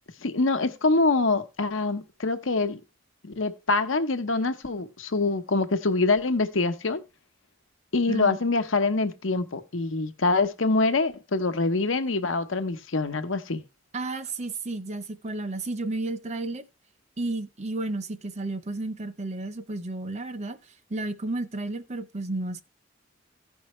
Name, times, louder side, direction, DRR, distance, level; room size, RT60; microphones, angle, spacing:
voice 1, 0.2-2.8 3.2-7.0 7.9-13.6, left 3 dB, 80° left, 0.9 m, -25 dB
voice 2, 8.1-8.4 13.9-16.6 17.2-20.6 20.9-22.6, right 2 dB, 35° right, 0.7 m, -32 dB
15.5 x 5.5 x 3.1 m
head